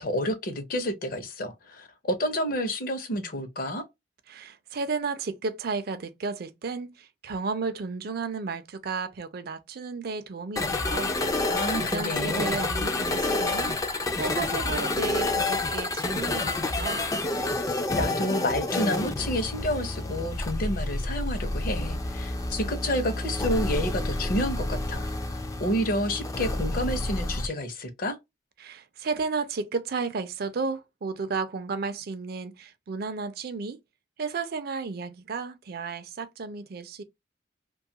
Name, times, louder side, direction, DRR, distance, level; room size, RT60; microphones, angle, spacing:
voice 1, 0.0-3.8 11.4-12.5 18.0-28.2, equal, 50° left, 0.7 m, -29 dB
voice 2, 4.3-17.0 28.6-33.8 34.2-37.0, right 4 dB, 55° right, 0.4 m, -33 dB
sound 1, 10.6-27.5, left 2 dB, 20° left, 0.3 m, -29 dB
2.6 x 2.3 x 2.7 m
head